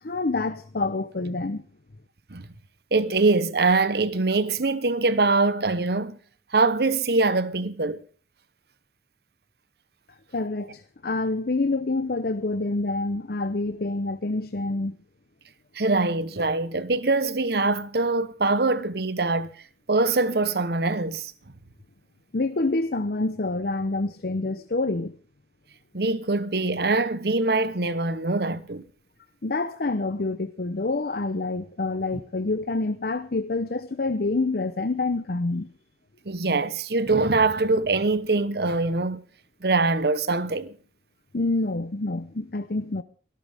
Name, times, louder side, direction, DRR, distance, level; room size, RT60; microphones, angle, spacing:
voice 1, 0.0-1.6 10.3-15.0 22.3-25.2 29.4-35.7 41.3-43.0, left 2 dB, 60° left, 0.8 m, -27 dB
voice 2, 2.9-6.2 6.5-8.0 15.7-19.5 19.9-21.3 25.9-28.9 36.3-39.2 39.6-40.7, right 3 dB, 60° right, 1.0 m, -23 dB
23.0 x 13.5 x 3.6 m
head